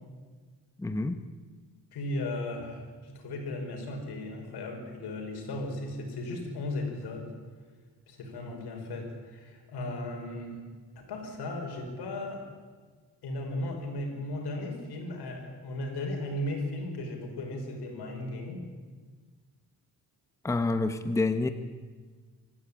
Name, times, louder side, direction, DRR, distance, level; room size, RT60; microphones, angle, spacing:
voice 1, 0.8-1.2 20.4-21.5, left 3 dB, 10° left, 9 dB, 0.8 m, -28 dB
voice 2, 1.9-7.3 8.1-10.6 11.0-12.4 13.2-18.6, left 1 dB, 85° left, 2 dB, 5.4 m, -36 dB
24.5 x 14.5 x 9.0 m, 1.5 s
cardioid pair, 160°, 39 cm